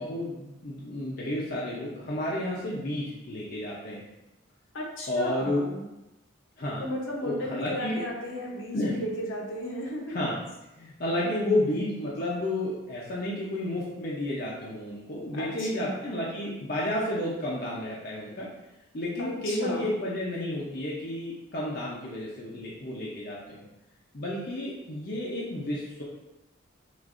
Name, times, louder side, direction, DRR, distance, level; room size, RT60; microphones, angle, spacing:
voice 1, 0.0-4.0 5.1-5.6 6.6-6.8 7.2-8.0 8.7-8.9 10.1-10.3 10.8-18.5 18.9-23.6 24.1-26.0, left 1 dB, 50° left, -6 dB, 0.7 m, -31 dB
voice 2, 4.7-5.8 6.8-10.2 11.2-11.6 15.3-16.0 16.5-16.6 19.2-20.0, equal, 70° left, -2 dB, 1.0 m, -34 dB
6.1 x 2.6 x 2.6 m, 0.96 s
head